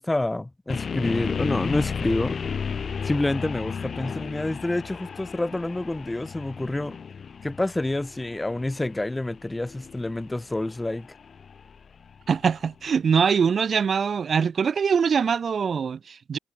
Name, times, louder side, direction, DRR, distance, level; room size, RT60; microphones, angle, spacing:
voice 1, 0.0-2.4 3.0-7.0 7.4-11.1, left 2 dB, 15° left, 1.9 m, -28 dB
sound 1, 0.7-12.6, left 6 dB, 45° left, 0.8 m, -34 dB
voice 2, 12.3-16.4, right 6 dB, 45° right, 1.4 m, -23 dB
cardioid pair, 90°, 0 cm